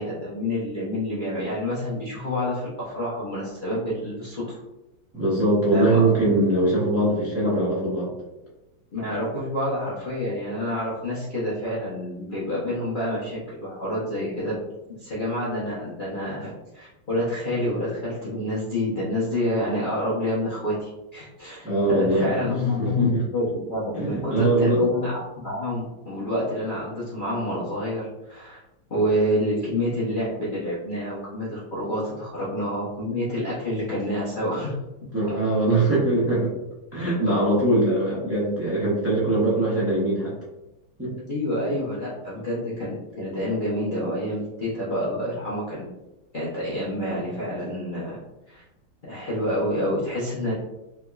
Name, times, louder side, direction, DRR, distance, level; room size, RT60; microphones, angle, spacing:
voice 1, 0.0-4.6 5.7-6.4 8.9-14.6 15.0-23.4 23.7-28.6 28.9-34.8 41.3-45.9 46.3-48.2 48.5-48.6 49.1-50.5, left 1 dB, 85° left, -8 dB, 0.4 m, -28 dB
voice 2, 5.1-8.1 21.6-22.3 22.8-23.2 23.9-24.8 35.1-36.5 36.9-40.3 41.0-41.1, right 2 dB, 20° right, -7 dB, 0.4 m, -22 dB
3.4 x 2.9 x 2.3 m, 0.98 s
omnidirectional pair, 2.1 m